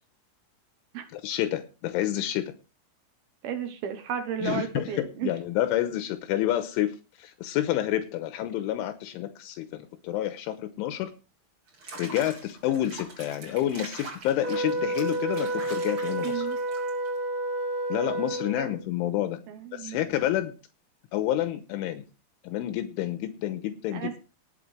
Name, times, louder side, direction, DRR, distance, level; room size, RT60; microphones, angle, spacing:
voice 1, 1.1-2.5 4.4-11.1 12.0-16.5 17.9-19.4 19.7-20.5 21.1-22.1 22.4-24.2, left 13 dB, 85° left, 8 dB, 3.3 m, -29 dB
voice 2, 3.4-5.3 16.2-16.6 18.6-18.7 19.5-20.0 23.9-24.2, right 8 dB, 75° right, 7 dB, 2.3 m, -33 dB
Water / Bathtub (filling or washing), 11.7-17.2, right 3 dB, 30° right, 3.9 m, -43 dB
Wind instrument woodwind instrument, 14.4-18.8, right 1 dB, 50° right, 2.9 m, -30 dB
19.0 x 8.2 x 3.3 m, 0.32 s
omnidirectional pair, 5.7 m